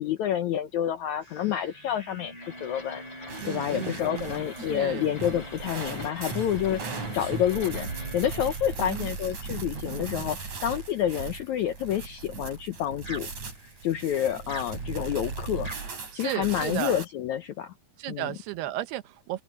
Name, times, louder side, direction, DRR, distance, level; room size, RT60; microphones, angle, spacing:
voice 1, 0.0-3.0 3.4-13.3 13.8-15.7 16.1-17.7 18.1-18.3, left 10 dB, 85° left, 1.6 m, -29 dB
sound 1, 1.2-12.7 13.0-16.9, right 1 dB, 10° right, 5.4 m, -46 dB
sound 2, 2.4-8.6, left 4 dB, 30° left, 4.5 m, -46 dB
sound 3, 3.3-17.1, right 4 dB, 45° right, 5.9 m, -37 dB
voice 2, 3.4-5.2 8.8-9.1 16.1-17.0 18.0-19.4, right 14 dB, 85° right, 3.0 m, -35 dB
open air
omnidirectional pair, 4.5 m